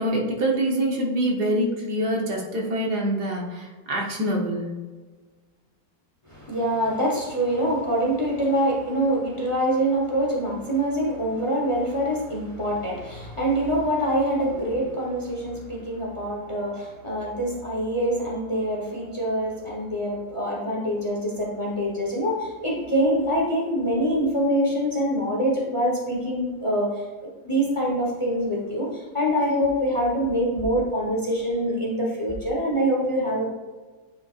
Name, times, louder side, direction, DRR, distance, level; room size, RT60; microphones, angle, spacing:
voice 1, 0.0-4.8, right 1 dB, 60° right, -2 dB, 1.6 m, -25 dB
voice 2, 6.3-33.4, equal, 20° left, -3 dB, 0.9 m, -25 dB
9.3 x 5.1 x 2.5 m, 1.3 s
omnidirectional pair, 2.1 m